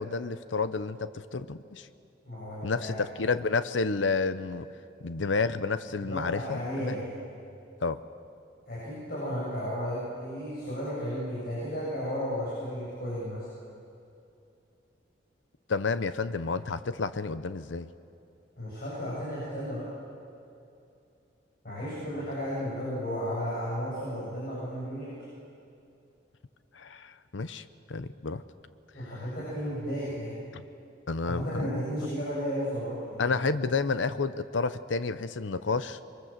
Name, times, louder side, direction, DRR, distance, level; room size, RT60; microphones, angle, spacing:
voice 1, 0.0-1.9 2.6-4.7 5.0-7.0 7.8-8.0 15.7-17.9 26.7-28.4 31.1-31.8 33.2-36.0, left 4 dB, 90° left, 13 dB, 0.7 m, -30 dB
voice 2, 2.2-3.1 6.0-7.1 8.7-13.5 18.6-19.9 21.6-25.1 28.9-30.4 31.3-33.4, equal, 55° left, -8 dB, 8.0 m, -34 dB
24.5 x 23.5 x 7.5 m, 2.6 s
head